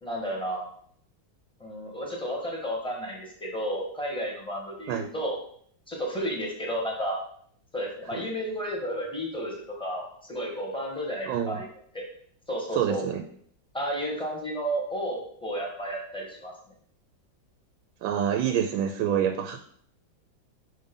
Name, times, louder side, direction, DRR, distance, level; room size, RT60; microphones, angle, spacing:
voice 1, 0.0-0.7 1.6-5.4 5.9-7.2 7.7-11.7 11.9-12.0 12.5-13.0 13.7-16.5, equal, 5° left, -1 dB, 1.1 m, -32 dB
voice 2, 11.2-11.6 12.7-13.2 18.0-19.6, right 9 dB, 85° right, 6 dB, 1.3 m, -27 dB
5.3 x 3.7 x 5.2 m, 0.62 s
omnidirectional pair, 2.1 m